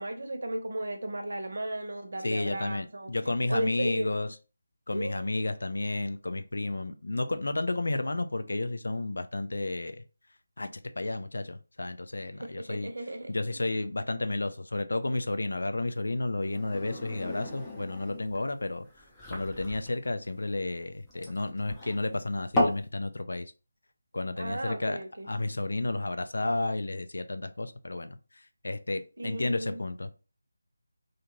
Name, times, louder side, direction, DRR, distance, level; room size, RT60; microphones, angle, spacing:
voice 1, 0.0-3.1 3.5-4.1 4.9-5.2 12.4-13.3 24.4-25.3 29.2-29.8, right 1 dB, 70° right, 0.8 m, -35 dB
voice 2, 2.2-4.3 4.9-10.0 10.6-10.7 11.0-12.9 13.3-18.9 19.3-23.5 24.1-25.0 25.3-28.2 28.6-30.1, left 2 dB, 75° left, 0.4 m, -32 dB
sound 1, 16.4-22.9, left 1 dB, 10° left, 0.6 m, -34 dB
2.5 x 2.4 x 3.0 m
figure-of-eight pair, 165°, 0 cm